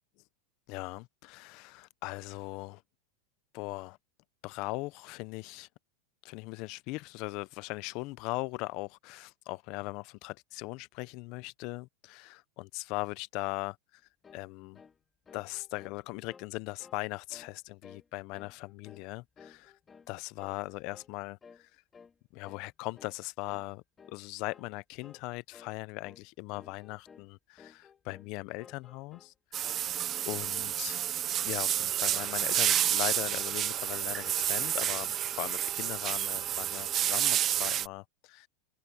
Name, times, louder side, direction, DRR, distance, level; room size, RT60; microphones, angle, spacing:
voice 1, 0.7-2.8 3.5-4.0 4.4-5.7 6.2-14.0 14.3-14.8 15.3-19.7 20.1-21.7 22.3-23.8 24.1-30.0 30.2-30.9 31.4-38.5, left 23 dB, 45° left, 0.7 m, -39 dB
sound 1, 14.2-14.5 14.7-15.0 15.3-16.5 16.8-17.0 17.3-17.6 17.8-18.1 18.3-19.1 19.4-20.1 20.4-20.6 20.9-21.1 21.4-21.6 21.9-22.1 22.4-22.7 23.0-23.2 23.5-23.7 24.0-24.2 24.5-24.7 25.0-25.3 25.5-25.7 26.0-26.2 26.5-27.3 27.6-28.3 28.6-29.3 29.6-30.4, left 6 dB, 15° left, 2.4 m, -56 dB
sound 2, 29.5-37.9, right 11 dB, 25° right, 0.5 m, -30 dB
supercardioid pair, 155°, 0 cm